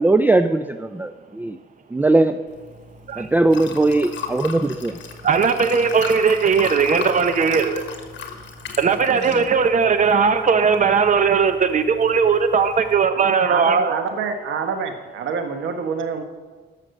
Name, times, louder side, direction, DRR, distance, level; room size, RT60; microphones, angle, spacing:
voice 1, 0.0-1.6 1.9-2.4 3.2-5.0, right 2 dB, 10° right, 10 dB, 0.4 m, -19 dB
Liquid, 2.5-13.0, left 6 dB, 65° left, 1.4 m, -37 dB
voice 2, 5.2-7.8 8.8-13.9, right 5 dB, 40° right, 10 dB, 1.0 m, -18 dB
voice 3, 13.1-16.2, right 5 dB, 75° right, 7 dB, 1.3 m, -27 dB
11.5 x 6.5 x 6.5 m, 1.4 s
cardioid pair, 90°, 20 cm